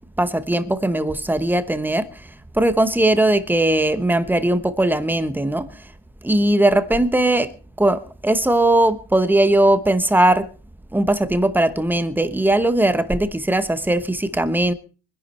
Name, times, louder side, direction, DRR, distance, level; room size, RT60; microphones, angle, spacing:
voice 1, 0.2-2.1 2.6-5.7 6.2-7.5 7.8-10.5 10.9-14.7, right 1 dB, 5° right, 1.0 m, -19 dB
24.0 x 11.0 x 4.3 m
cardioid pair, 135°, 42 cm